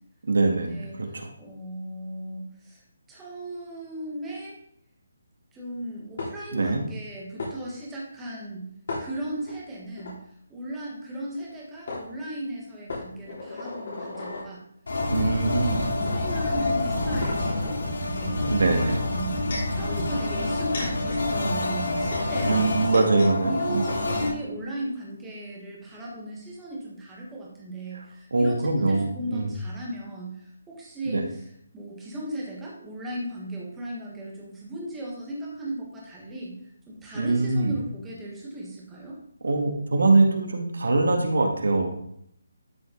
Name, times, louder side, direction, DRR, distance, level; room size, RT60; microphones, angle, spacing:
voice 1, 0.3-1.3 6.5-6.8 15.1-15.8 18.5-19.0 22.4-23.8 27.9-28.0 28.3-29.5 31.1-31.2 37.1-37.8 39.4-41.9, right 3 dB, 70° right, 3 dB, 2.0 m, -23 dB
voice 2, 1.4-2.8 3.1-4.6 5.5-8.7 9.0-10.2 10.5-14.6 15.9-18.5 19.0-19.4 19.7-23.1 23.4-31.4 31.7-39.2, right 1 dB, 5° right, -4 dB, 1.5 m, -37 dB
sound 1, 6.2-6.7 7.4-7.5 8.9-9.5 10.0-10.1 11.4-11.5 11.9-12.0 12.9-14.5 15.3-15.4 16.1-16.2 16.7-17.9 19.0-19.8 20.4-23.3 23.6-23.7 23.9-24.2, left 2 dB, 40° left, 3.4 m, -36 dB
sound 2, 14.9-24.3, left 2 dB, 70° left, 3.1 m, -27 dB
12.0 x 5.6 x 3.9 m, 0.70 s
hypercardioid pair, 180°, 0 cm